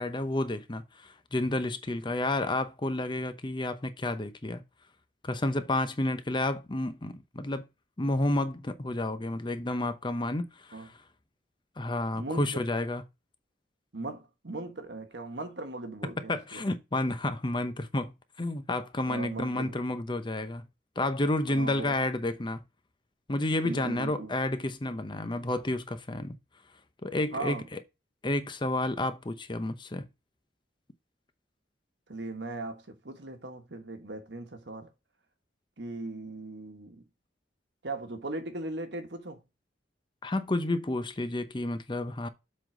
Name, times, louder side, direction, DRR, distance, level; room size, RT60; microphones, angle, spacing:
voice 1, 0.0-4.6 5.2-7.6 8.0-10.9 11.8-13.0 16.3-18.1 18.4-20.6 21.0-22.6 23.3-26.4 27.0-27.8 28.2-30.1 40.2-42.3, left 1 dB, 25° left, 0.7 m, -30 dB
voice 2, 12.1-12.5 13.9-16.6 19.1-19.8 21.5-22.0 23.6-24.3 27.3-27.6 32.1-34.9 35.8-37.0 37.8-39.4, right 2 dB, 70° right, 1.4 m, -38 dB
7.6 x 4.0 x 4.9 m
head